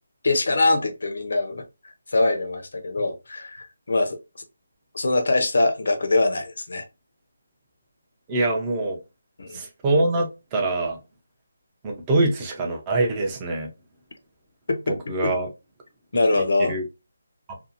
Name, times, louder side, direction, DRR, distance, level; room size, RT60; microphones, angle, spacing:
voice 1, 0.2-4.2 4.9-6.8 9.4-9.6 14.7-15.3 16.1-16.7, left 2 dB, 55° left, 0.6 m, -23 dB
voice 2, 8.3-9.0 9.5-11.0 11.8-13.7 15.1-15.5 16.7-16.8, right 2 dB, 10° right, 0.4 m, -24 dB
2.5 x 2.3 x 2.6 m
hypercardioid pair, 175°, 0 cm